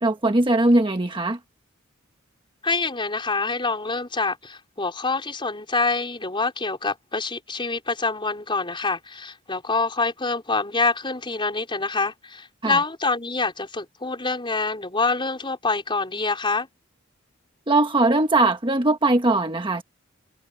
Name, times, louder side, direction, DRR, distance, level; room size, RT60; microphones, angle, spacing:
voice 1, 0.0-1.4 12.6-12.8 17.7-19.8, right 2 dB, 25° right, 1.3 m, -20 dB
voice 2, 2.6-16.7, left 3 dB, 25° left, 4.6 m, -26 dB
head